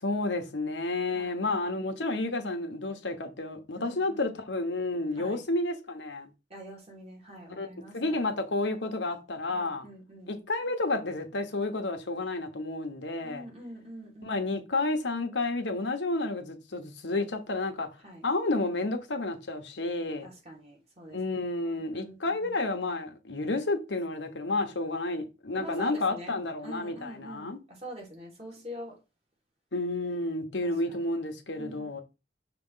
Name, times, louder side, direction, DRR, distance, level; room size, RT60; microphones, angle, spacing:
voice 1, 0.0-6.3 7.6-7.7 7.9-9.9 10.3-13.5 14.2-17.9 18.2-20.3 21.1-27.6 29.7-32.0, left 2 dB, 85° left, 1.2 m, -31 dB
voice 2, 3.8-4.2 5.2-5.4 6.5-8.2 9.5-10.3 13.2-14.4 18.0-18.2 20.2-21.2 21.7-22.5 25.5-26.4 26.6-27.5 27.8-28.9 30.6-30.7 31.6-32.0, equal, 35° right, 2.6 m, -44 dB
5.9 x 3.1 x 5.6 m
head